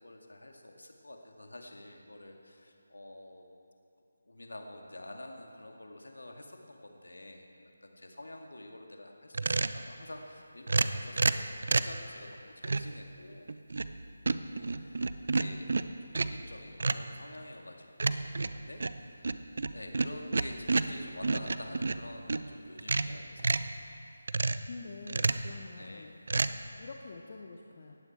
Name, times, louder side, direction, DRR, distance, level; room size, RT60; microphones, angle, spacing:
voice 1, 0.0-3.4 4.3-13.5 14.4-15.1 15.3-15.7 16.0-19.4 19.7-23.7 25.8-26.1, left 1 dB, 70° left, 2 dB, 2.2 m, -48 dB
sound 1, 9.3-9.8 10.7-12.0 12.6-13.0 13.5-14.0 14.3-16.4 16.8-17.1 18.0-22.5 22.8-23.7 24.3-24.7 25.1-25.5 26.3-26.5, right 3 dB, 55° right, 0.6 m, -30 dB
voice 2, 24.6-26.1 26.8-28.0, left 3 dB, 40° left, 2 dB, 1.0 m, -46 dB
19.0 x 14.5 x 4.4 m, 2.5 s
figure-of-eight pair, 155°, 0 cm